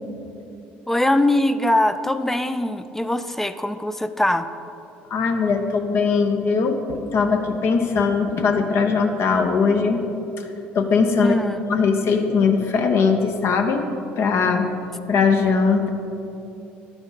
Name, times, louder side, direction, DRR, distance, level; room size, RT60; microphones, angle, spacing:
voice 1, 0.9-4.5 11.2-11.6, left 1 dB, 5° left, 10 dB, 0.4 m, -21 dB
voice 2, 5.1-10.0 10.7-11.4 11.7-13.9 14.2-14.7 15.1-15.9, left 5 dB, 55° left, 4 dB, 0.7 m, -20 dB
11.0 x 4.4 x 4.0 m, 2.9 s
supercardioid pair, 75°, 5 cm